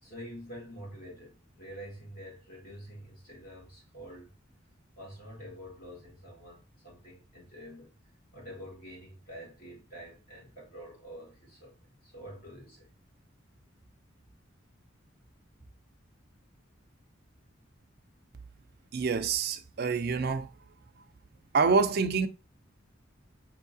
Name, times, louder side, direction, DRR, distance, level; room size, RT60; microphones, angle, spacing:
voice 1, 0.0-4.3 5.0-7.9 8.3-12.9, equal, 50° left, 2.0 m, -47 dB
voice 2, 18.9-20.5 21.5-22.3, right 5 dB, 55° right, 0.4 m, -26 dB
5.4 x 2.8 x 2.7 m
head